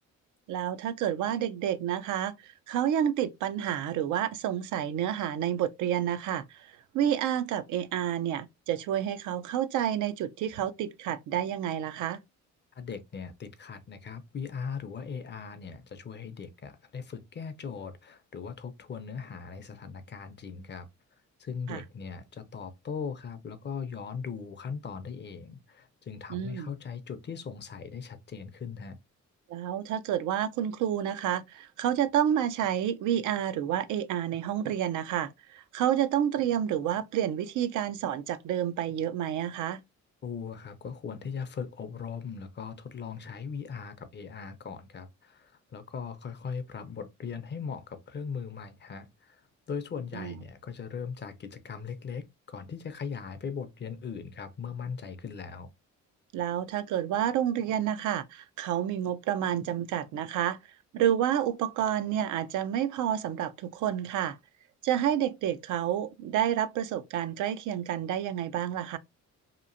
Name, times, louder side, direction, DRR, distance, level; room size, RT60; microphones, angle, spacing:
voice 1, 0.5-6.7 6.9-12.2 21.7-21.8 26.3-26.7 29.5-39.8 50.1-50.3 56.3-60.6 60.9-64.4 64.8-69.0, right 10 dB, 80° right, 0.5 m, -29 dB
voice 2, 12.8-20.9 21.4-29.0 40.2-49.4 49.7-55.7, left 6 dB, 35° left, 0.5 m, -39 dB
2.9 x 2.4 x 2.5 m
cardioid pair, 90°, 30 cm